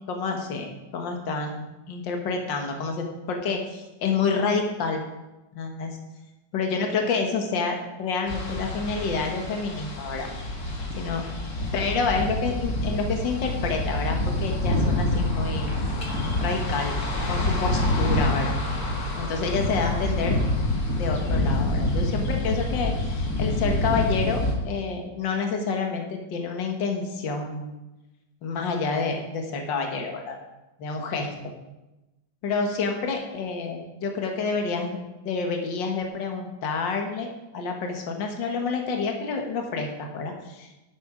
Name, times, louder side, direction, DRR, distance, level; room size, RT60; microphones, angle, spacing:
voice 1, 0.1-5.0 5.6-6.0 6.5-10.3 11.0-11.3 11.7-15.7 16.4-17.0 17.3-18.6 19.2-20.4 21.0-27.7 28.4-30.4 30.8-31.3 32.4-35.0 35.3-40.7, left 4 dB, 70° left, 3 dB, 2.0 m, -28 dB
sound 1, 8.3-24.5, left 1 dB, 50° left, 2.1 m, -27 dB
11.0 x 7.9 x 5.0 m, 1.0 s
omnidirectional pair, 2.1 m